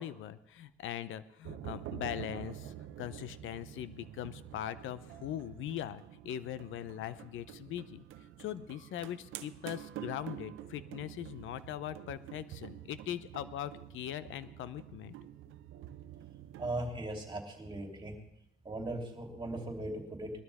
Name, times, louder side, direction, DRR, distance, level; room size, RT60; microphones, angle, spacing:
voice 1, 0.0-8.0 8.4-15.2, left 11 dB, 80° left, 15 dB, 0.8 m, -41 dB
sound 1, 1.4-16.9, right 11 dB, 80° right, 0.8 m, -48 dB
voice 2, 16.6-18.2 18.6-20.3, right 1 dB, 25° right, 1 dB, 3.2 m, -38 dB
20.5 x 12.5 x 3.6 m, 0.80 s
cardioid pair, 90°, 20 cm